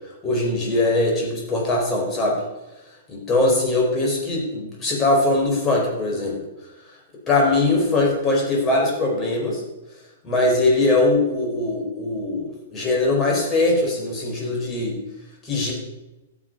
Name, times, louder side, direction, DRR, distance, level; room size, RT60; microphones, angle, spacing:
voice 1, 0.2-2.4 3.1-6.4 7.3-9.6 10.2-15.0 15.4-15.7, left 2 dB, 25° left, -2 dB, 4.6 m, -21 dB
14.0 x 7.6 x 5.4 m, 1.0 s
figure-of-eight pair, 105°, 0 cm